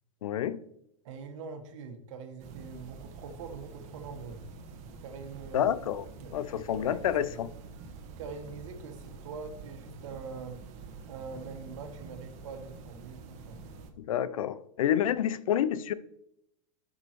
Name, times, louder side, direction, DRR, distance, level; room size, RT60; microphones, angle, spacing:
voice 1, 0.2-0.6 5.5-6.0 6.3-7.5 14.0-15.9, left 10 dB, 80° left, 0.6 m, -28 dB
voice 2, 1.0-4.4 5.0-5.9 6.2-6.4 6.6-7.4 8.2-10.8 11.1-13.6, right 5 dB, 65° right, 1.7 m, -44 dB
sound 1, 2.4-13.9, right 4 dB, 40° right, 1.4 m, -47 dB
12.0 x 6.5 x 3.0 m
hypercardioid pair, 125°, 17 cm